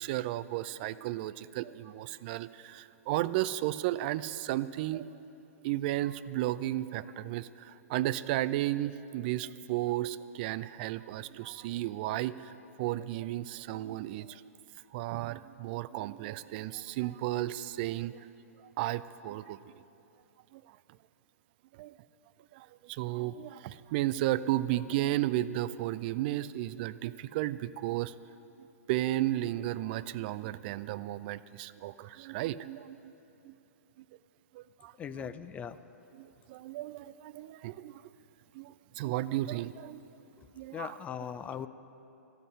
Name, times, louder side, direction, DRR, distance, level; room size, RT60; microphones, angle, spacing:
voice 1, 0.0-5.1 5.6-12.5 12.8-14.4 14.9-18.3 18.8-19.6 20.5-20.6 21.8-21.9 22.5-28.1 28.9-33.1 33.4-33.5 34.5-34.9 35.2-35.3 36.1-38.0 38.5-40.0 40.6-41.0, right 15 dB, 40° right, 15 dB, 0.4 m, -34 dB
voice 2, 35.0-35.8 40.7-41.7, left 8 dB, 15° left, 12 dB, 0.5 m, -39 dB
14.5 x 7.9 x 9.9 m, 2.9 s
figure-of-eight pair, 115°, 8 cm